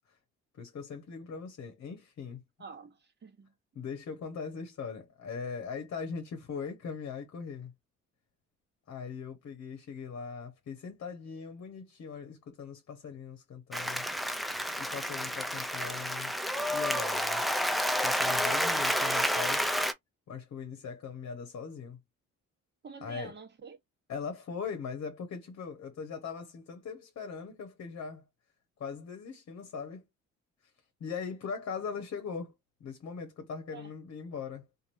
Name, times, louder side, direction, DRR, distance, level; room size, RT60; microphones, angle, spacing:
voice 1, 0.6-2.4 3.7-7.7 8.9-14.0 14.8-16.3 16.7-17.4 18.0-19.7 20.3-22.0 23.0-23.3 24.1-28.2 28.8-30.1 31.0-32.5 32.8-34.6, left 6 dB, 55° left, 1.0 m, -40 dB
voice 2, 2.6-3.5 22.8-23.8 33.7-33.9, right 5 dB, 35° right, 1.0 m, -47 dB
Applause, 13.7-19.9, equal, ahead, 0.4 m, -30 dB
3.1 x 2.5 x 2.5 m
cardioid pair, 90°, 30 cm